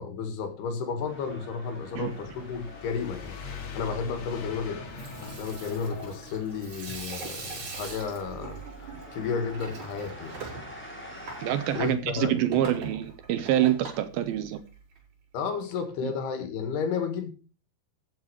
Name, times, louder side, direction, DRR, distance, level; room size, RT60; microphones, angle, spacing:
voice 1, 0.0-3.4 3.7-4.9 5.2-10.4 11.8-12.4 15.3-17.3, left 6 dB, 75° left, 3.9 m, -32 dB
sound 1, 1.0-7.7, left 4 dB, 50° left, 2.6 m, -43 dB
sound 2, 1.1-11.9, equal, 5° left, 3.1 m, -47 dB
Water tap faucet / Sink (filling or washing), 4.8-15.0, right 4 dB, 45° right, 7.4 m, -42 dB
voice 2, 11.4-14.6 16.0-16.1, right 12 dB, 75° right, 2.6 m, -26 dB
14.5 x 7.4 x 4.8 m
omnidirectional pair, 4.7 m